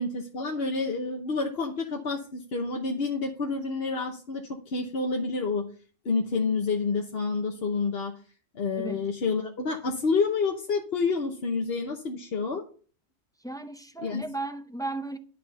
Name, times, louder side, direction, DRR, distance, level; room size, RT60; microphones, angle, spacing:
voice 1, 0.0-5.6 6.0-8.1 8.5-12.6 14.0-14.2, left 4 dB, 60° left, 1.2 m, -28 dB
voice 2, 8.7-9.1 13.4-15.2, right 2 dB, 5° left, 0.3 m, -35 dB
11.0 x 4.2 x 6.6 m
omnidirectional pair, 1.2 m